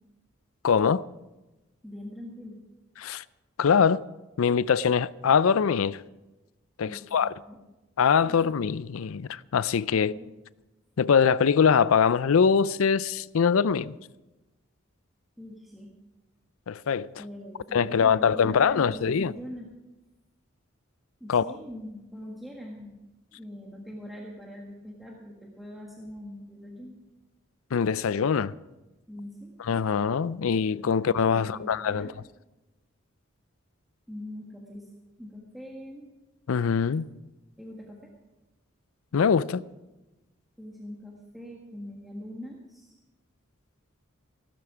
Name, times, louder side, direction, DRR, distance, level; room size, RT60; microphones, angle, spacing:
voice 1, 0.6-1.0 3.0-3.2 3.6-4.0 4.4-6.0 6.8-7.3 8.0-10.1 11.0-14.0 16.7-17.1 17.7-19.3 21.3-21.5 27.7-28.5 29.7-32.1 36.5-37.1 39.1-39.6, left 6 dB, 80° left, 0.4 m, -23 dB
voice 2, 1.8-2.6 6.8-7.6 8.2-8.6 9.9-10.3 15.4-15.9 17.1-19.7 21.2-23.0 23.3-27.0 29.1-29.6 31.3-32.1 34.1-34.9 35.2-36.2 37.6-38.1 40.6-43.0, equal, ahead, 1.6 m, -42 dB
15.5 x 13.0 x 4.9 m
head